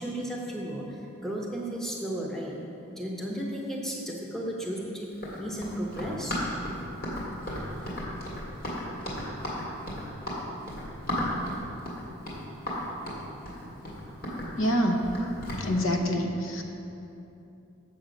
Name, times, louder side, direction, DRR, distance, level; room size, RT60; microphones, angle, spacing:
voice 1, 0.0-2.5 3.0-5.1 5.4-6.4, right 1 dB, ahead, -3 dB, 0.8 m, -34 dB
Run, 5.1-15.7, left 1 dB, 45° left, 1.9 m, -34 dB
voice 2, 14.6-15.1 15.6-16.6, equal, 70° left, 3 dB, 0.8 m, -26 dB
7.3 x 7.1 x 5.1 m, 2.9 s
head